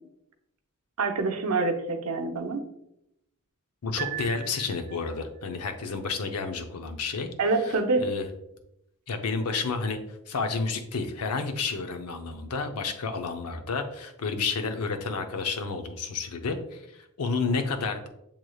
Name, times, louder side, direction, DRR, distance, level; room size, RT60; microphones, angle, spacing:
voice 1, 1.0-2.6 7.4-8.0, right 3 dB, 85° right, 4 dB, 0.7 m, -26 dB
voice 2, 3.8-7.3 7.6-8.3 9.1-18.1, left 4 dB, 85° left, 6 dB, 0.6 m, -31 dB
Piano, 4.0-5.2, right 12 dB, 40° right, 0.6 m, -37 dB
7.2 x 3.2 x 2.3 m, 0.82 s
head